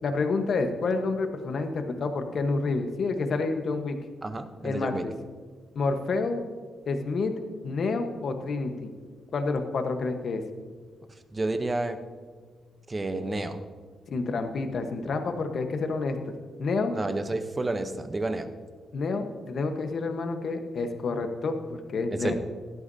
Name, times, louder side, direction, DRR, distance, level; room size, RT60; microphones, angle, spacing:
voice 1, 0.0-4.0 4.6-5.1 5.7-6.4 6.9-7.3 7.6-8.9 9.3-10.4 14.1-16.3 16.6-16.9 18.9-22.3, left 3 dB, 50° left, 6 dB, 1.1 m, -29 dB
voice 2, 4.2-5.0 11.3-12.0 12.9-13.6 16.9-18.5 22.1-22.3, right 2 dB, 20° right, 9 dB, 0.7 m, -30 dB
16.5 x 12.0 x 2.7 m, 1.6 s
wide cardioid pair, 145°, 0 cm